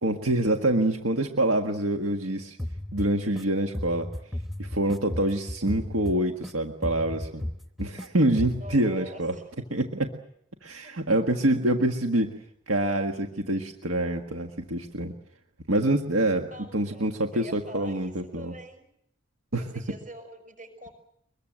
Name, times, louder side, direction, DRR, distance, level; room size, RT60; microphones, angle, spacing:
voice 1, 0.0-2.6 2.9-4.1 4.6-7.4 7.8-9.3 9.7-10.1 10.6-12.3 12.7-15.1 15.7-16.5 16.7-18.5 19.5-19.6, right 1 dB, 75° right, 4 dB, 1.7 m, -26 dB
sound 1, 2.6-3.4 3.7-6.5 6.8-8.1 8.4-8.8, left 1 dB, ahead, 0.9 m, -35 dB
voice 2, 8.4-9.6 10.8-11.0 16.2-18.9 19.6-20.9, equal, 40° right, 7 dB, 5.7 m, -45 dB
24.0 x 22.0 x 7.8 m, 0.73 s
head